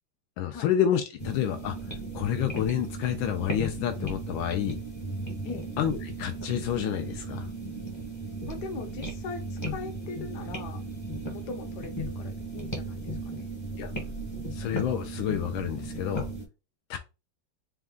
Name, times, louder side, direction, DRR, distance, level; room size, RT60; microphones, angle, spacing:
voice 1, 0.4-1.8 2.1-4.8 5.8-7.5 13.8-13.9 14.5-16.3 16.9-17.0, left 10 dB, 80° left, 1.4 m, -29 dB
sound 1, 1.2-16.5, right 2 dB, 25° left, 0.5 m, -36 dB
voice 2, 8.5-10.8 11.3-13.6, left 5 dB, 65° left, 1.3 m, -40 dB
4.3 x 2.4 x 3.6 m
omnidirectional pair, 2.2 m